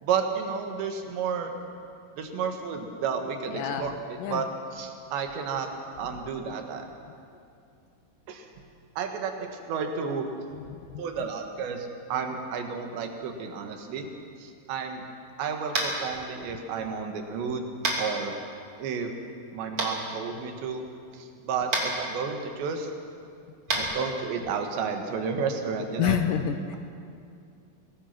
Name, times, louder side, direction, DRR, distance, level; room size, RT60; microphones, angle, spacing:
voice 1, 0.0-1.5 2.2-5.7 6.0-6.9 8.3-8.5 9.0-10.3 11.0-14.1 14.4-15.0 15.4-17.7 18.0-18.3 18.8-19.1 19.5-20.8 21.1-22.9 23.7-26.2, right 6 dB, 85° right, 4 dB, 4.0 m, -31 dB
voice 2, 3.5-4.4 10.9-11.0 26.0-26.8, left 8 dB, 80° left, 7 dB, 2.0 m, -28 dB
Tap, 15.7-16.0 17.8-18.0 19.8-19.9 21.7-21.8 23.6-23.8, right 3 dB, 35° right, 3.2 m, -26 dB
23.5 x 19.5 x 6.0 m, 2.4 s
omnidirectional pair, 4.9 m